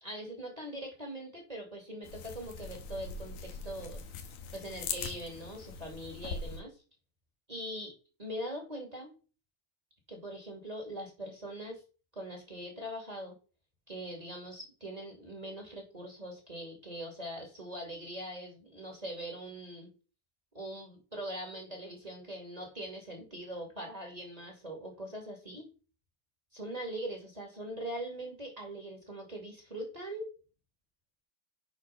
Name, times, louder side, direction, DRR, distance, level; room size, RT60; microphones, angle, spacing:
voice 1, 0.0-6.8 7.5-7.9 8.2-9.1 10.1-11.8 12.2-13.4 13.9-19.9 20.5-25.7 26.5-30.3, right 1 dB, 15° right, 0 dB, 2.0 m, -42 dB
sound 1, 2.0-6.6, left 5 dB, 80° left, 2.3 m, -41 dB
8.9 x 4.3 x 5.6 m, 0.36 s
omnidirectional pair, 3.4 m